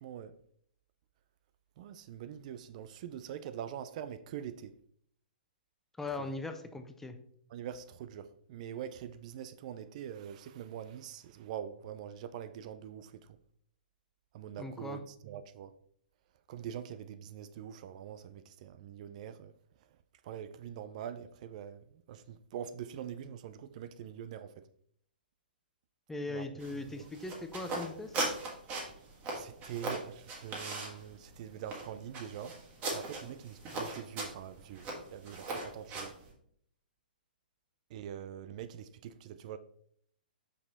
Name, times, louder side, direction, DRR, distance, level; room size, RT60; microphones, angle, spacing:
voice 1, 0.0-0.3 1.8-4.7 6.2-6.3 7.5-13.3 14.3-15.7 16.5-19.5 20.2-24.7 26.3-26.5 26.9-27.1 29.3-32.6 32.9-36.2 37.9-39.6, right 9 dB, 45° right, 0.4 m, -44 dB
voice 2, 6.0-7.2 14.6-15.0 26.1-28.2, left 2 dB, 5° left, 0.5 m, -39 dB
sound 1, 26.6-36.3, right 2 dB, 30° right, 1.7 m, -40 dB
5.6 x 4.8 x 4.0 m
hypercardioid pair, 130°, 5 cm